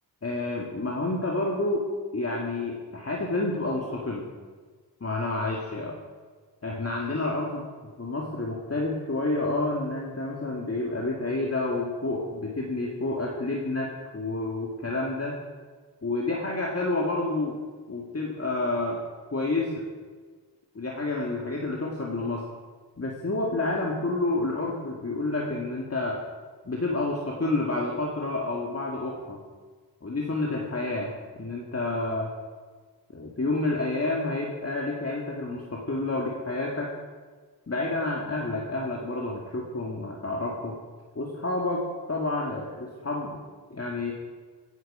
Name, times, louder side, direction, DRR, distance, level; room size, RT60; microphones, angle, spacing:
voice 1, 0.2-4.2 5.0-6.0 6.6-7.6 8.0-15.3 16.0-17.6 17.9-19.0 19.3-19.7 20.7-22.4 23.0-26.2 26.6-29.4 30.0-32.3 33.1-36.9 37.7-40.8 41.2-43.4 43.7-44.1, left 2 dB, 35° left, -2 dB, 2.2 m, -29 dB
17.5 x 10.0 x 5.0 m, 1.5 s
cardioid pair, 65°, 42 cm